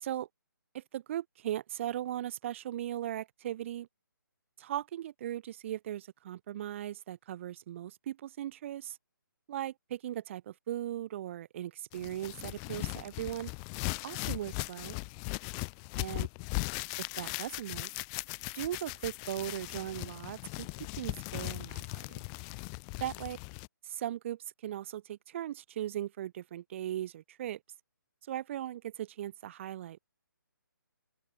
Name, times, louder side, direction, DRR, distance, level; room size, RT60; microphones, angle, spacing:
voice 1, 0.7-3.9 4.6-9.0 9.5-13.5 14.0-15.0 16.0-16.3 17.0-17.9 18.6-22.0 23.0-23.4 23.9-27.6 28.3-30.0, right 12 dB, 35° right, 1.7 m, -38 dB
sound 1, 11.9-23.7, left 40 dB or more, 20° left, 0.6 m, -38 dB
figure-of-eight pair, 145°, 11 cm